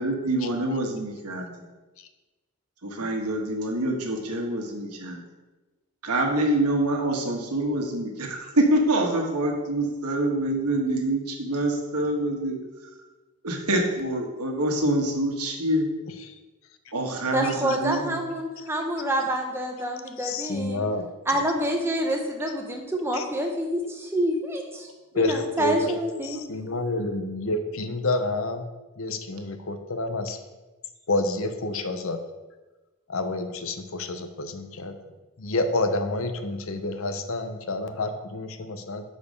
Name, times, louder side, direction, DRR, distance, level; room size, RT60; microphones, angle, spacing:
voice 1, 0.0-1.5 2.8-5.2 6.0-12.6 13.4-15.9 16.9-18.2, right 1 dB, 90° right, 1 dB, 1.3 m, -26 dB
voice 2, 17.3-20.8 21.3-24.9 25.1-26.4, right 1 dB, 10° right, 2 dB, 0.8 m, -27 dB
voice 3, 20.2-21.1 23.1-23.2 25.1-26.0 26.2-28.6 29.0-30.4 31.1-32.2 33.1-35.0 35.4-39.0, left 2 dB, 60° left, 8 dB, 0.7 m, -28 dB
6.7 x 4.8 x 5.3 m, 1.2 s
head